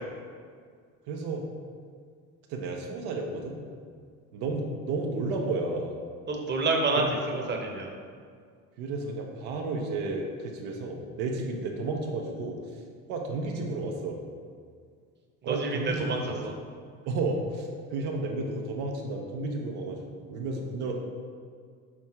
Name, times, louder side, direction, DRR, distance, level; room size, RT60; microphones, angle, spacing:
voice 1, 1.1-1.4 2.5-3.6 4.3-6.0 6.9-7.0 7.3-7.5 8.8-12.8 13.1-14.2 15.4-16.4 17.1-21.0, right 3 dB, 65° right, 1 dB, 0.8 m, -32 dB
voice 2, 6.3-7.9 15.4-16.5, right 3 dB, 25° right, 1 dB, 1.0 m, -28 dB
6.2 x 3.5 x 4.3 m, 2.1 s
hypercardioid pair, 70°, 41 cm